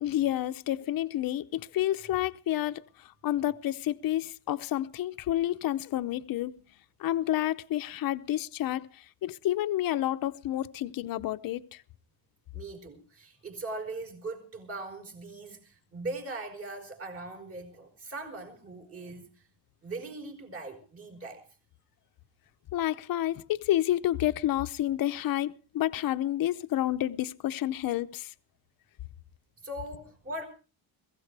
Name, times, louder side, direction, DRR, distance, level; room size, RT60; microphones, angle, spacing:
voice 1, 0.0-6.6 7.0-11.8 22.7-28.3, left 13 dB, 55° left, 0.8 m, -30 dB
voice 2, 12.5-19.3 19.8-21.4 29.6-30.4, right 2 dB, 35° right, 5.0 m, -40 dB
22.5 x 16.0 x 3.4 m
cardioid pair, 170°, 42 cm